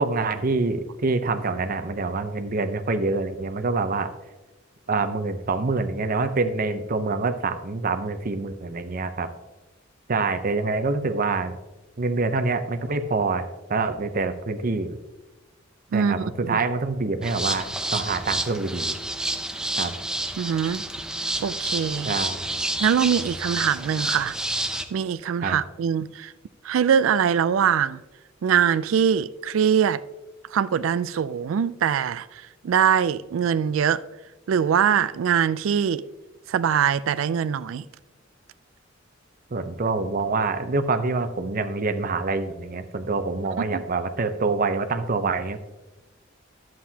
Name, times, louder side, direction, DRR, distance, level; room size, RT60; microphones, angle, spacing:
voice 1, 0.0-4.1 4.9-9.3 10.1-11.6 12.0-15.0 15.9-18.9 19.8-19.9 22.0-22.5 25.4-25.6 39.5-45.6, right 3 dB, 45° right, 0.7 m, -26 dB
sound 1, 17.2-24.9, right 1 dB, 5° right, 0.5 m, -29 dB
voice 2, 20.4-20.8 21.4-22.1 22.8-24.4 24.9-26.3 26.6-28.0 28.4-30.0 30.5-34.0 34.5-36.0 36.5-37.8 43.7-43.8, right 8 dB, 90° right, 0.3 m, -22 dB
11.0 x 7.6 x 2.8 m
head